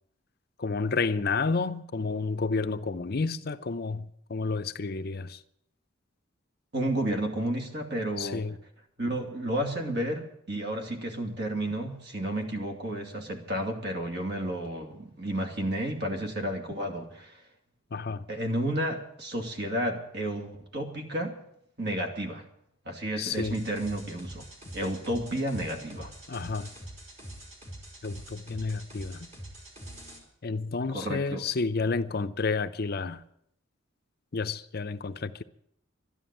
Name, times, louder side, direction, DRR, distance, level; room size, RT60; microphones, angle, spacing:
voice 1, 0.6-5.4 8.2-8.6 17.9-18.2 23.2-23.6 26.3-26.7 28.0-29.3 30.4-33.2 34.3-35.4, left 4 dB, 45° left, 0.6 m, -30 dB
voice 2, 6.7-8.4 9.0-17.4 18.3-21.4 21.8-22.4 22.9-24.5 24.7-26.1 30.9-31.4, right 1 dB, 50° right, 2.6 m, -31 dB
sound 1, 23.3-30.2, right 1 dB, 30° right, 3.8 m, -44 dB
12.5 x 11.0 x 8.9 m
head